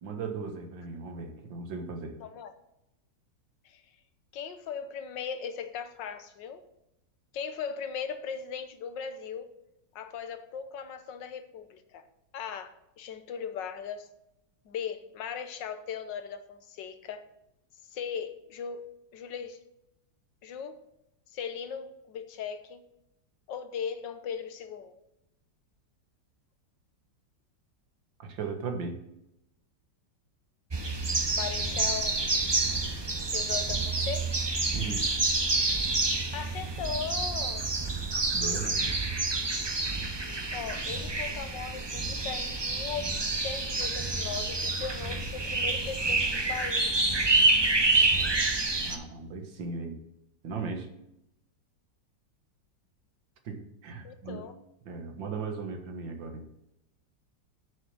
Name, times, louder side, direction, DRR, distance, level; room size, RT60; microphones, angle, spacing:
voice 1, 0.0-2.2 28.2-29.0 34.7-35.2 38.3-38.9 48.9-50.0 50.4-50.9 53.5-54.4 54.9-56.5, right 4 dB, 90° right, 5 dB, 2.1 m, -37 dB
voice 2, 2.2-2.5 3.6-3.8 4.3-6.6 7.3-9.5 9.9-12.0 12.3-14.1 14.6-17.2 17.9-19.6 20.4-20.8 21.3-22.9 23.5-25.0 31.4-32.2 32.9-33.0 33.3-34.4 36.3-37.7 40.5-43.1 43.4-47.3 54.0-54.6, left 7 dB, 80° left, 9 dB, 1.6 m, -38 dB
sound 1, 30.7-49.0, right 3 dB, 25° right, 0.5 m, -28 dB
8.5 x 6.6 x 6.2 m, 0.85 s
omnidirectional pair, 2.0 m